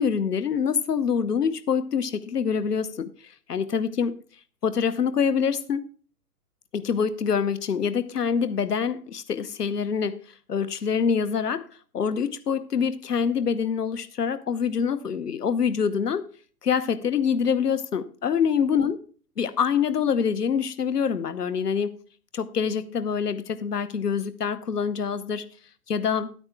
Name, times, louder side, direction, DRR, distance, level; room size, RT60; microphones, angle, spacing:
voice 1, 0.0-4.2 4.6-5.8 6.7-10.2 10.5-11.6 11.9-16.2 16.6-19.0 19.4-21.9 22.3-25.4 25.9-26.3, left 6 dB, 75° left, 1.0 m, -25 dB
10.0 x 8.8 x 3.3 m
figure-of-eight pair, 125°, 47 cm